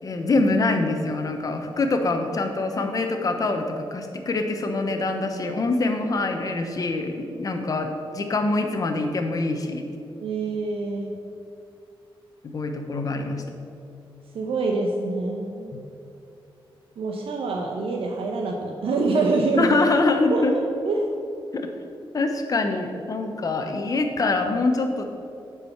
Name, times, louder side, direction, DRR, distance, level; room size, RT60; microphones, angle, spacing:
voice 1, 0.0-9.8 12.4-13.4 15.7-15.8 19.6-20.5 21.5-21.7 22.1-25.1, left 2 dB, 40° left, 5 dB, 0.8 m, -24 dB
voice 2, 10.2-11.1 14.3-15.7 17.0-19.8 20.3-20.5 20.8-21.0, right 3 dB, 85° right, 0 dB, 0.8 m, -25 dB
8.7 x 4.7 x 5.7 m, 2.6 s
wide cardioid pair, 150°, 9 cm